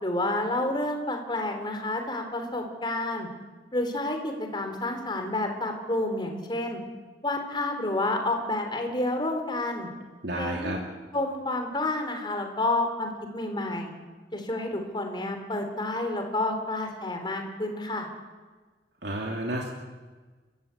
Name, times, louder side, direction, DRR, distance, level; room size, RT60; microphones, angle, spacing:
voice 1, 0.0-3.3 3.7-6.8 7.2-9.9 10.3-10.8 11.1-13.9 14.3-18.1, left 2 dB, 25° left, 4 dB, 3.8 m, -29 dB
voice 2, 10.2-10.8 19.0-19.7, right 1 dB, 75° right, -1 dB, 2.9 m, -31 dB
30.0 x 14.0 x 8.4 m, 1.4 s
head